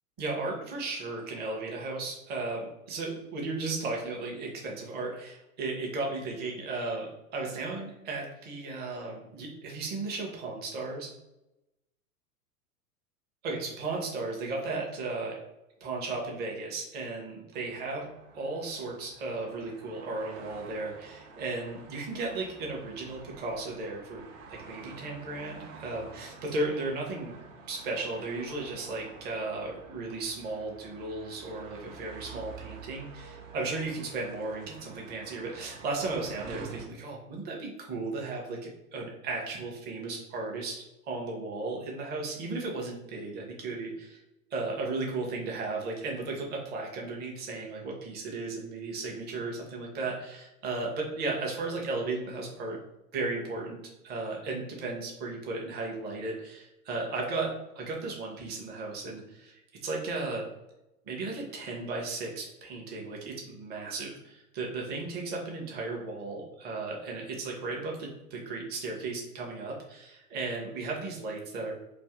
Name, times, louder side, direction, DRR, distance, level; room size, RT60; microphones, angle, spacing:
voice 1, 0.2-11.1 13.4-15.4 15.8-18.1 18.3-27.3 27.7-44.2 44.5-52.8 53.1-57.5 57.8-60.4 61.1-71.7, right 3 dB, 20° right, -1 dB, 0.7 m, -35 dB
sound 1, 17.5-36.9, right 5 dB, 55° right, 0.8 m, -49 dB
2.5 x 2.5 x 3.5 m, 0.93 s
figure-of-eight pair, 95°, 45 cm